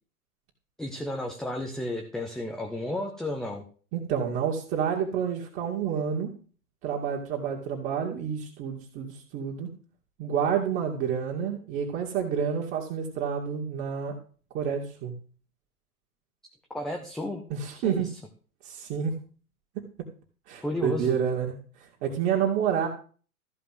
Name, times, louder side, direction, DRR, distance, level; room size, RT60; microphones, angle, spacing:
voice 1, 0.8-3.6 16.7-17.4 17.8-18.1 20.6-21.2, left 1 dB, ahead, 3 dB, 0.5 m, -32 dB
voice 2, 3.9-6.3 6.8-9.7 10.2-14.2 14.5-15.1 17.5-18.1 18.6-19.2 20.0-20.1 20.5-21.5 22.0-22.9, right 7 dB, 30° right, -1 dB, 2.5 m, -29 dB
14.5 x 5.2 x 7.8 m, 0.40 s
figure-of-eight pair, 120°, 45 cm